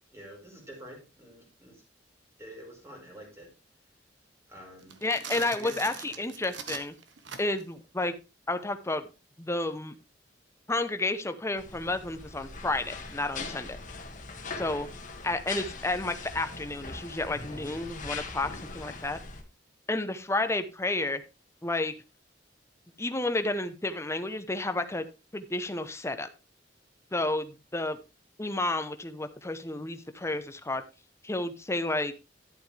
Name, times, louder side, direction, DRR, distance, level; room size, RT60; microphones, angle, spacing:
voice 1, 0.1-1.7 2.4-3.5 4.5-4.9 5.5-6.2, right 1 dB, 15° right, 0 dB, 4.5 m, -47 dB
sound 1, 4.8-7.7, right 7 dB, 75° right, 1.2 m, -41 dB
voice 2, 5.0-6.9 7.4-8.1 8.5-9.1 9.4-10.0 10.7-13.8 14.6-14.9 15.2-19.2 19.9-21.2 21.6-21.9 23.0-25.0 25.3-26.3 27.1-28.0 28.4-30.8 31.2-32.1, left 2 dB, 15° left, 9 dB, 0.8 m, -31 dB
sound 2, 11.6-19.4, left 4 dB, 45° left, 1.6 m, -41 dB
11.5 x 7.7 x 3.4 m, 0.29 s
head